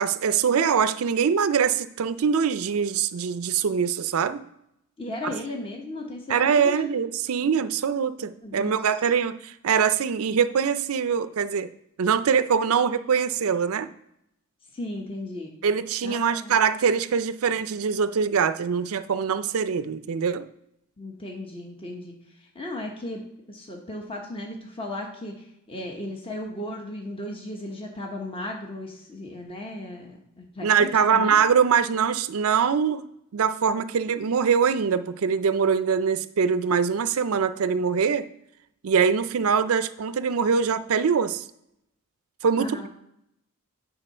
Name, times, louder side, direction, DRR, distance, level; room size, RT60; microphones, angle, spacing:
voice 1, 0.0-4.4 6.3-11.7 12.0-13.9 15.6-20.5 30.6-38.3 38.8-41.4 42.4-42.8, right 6 dB, 70° right, 12 dB, 0.4 m, -23 dB
voice 2, 5.0-6.8 8.4-8.8 14.7-15.5 16.0-16.5 21.0-23.2 23.5-31.4 42.6-42.9, left 1 dB, 25° left, 1 dB, 1.1 m, -36 dB
9.1 x 3.9 x 5.5 m, 0.79 s
head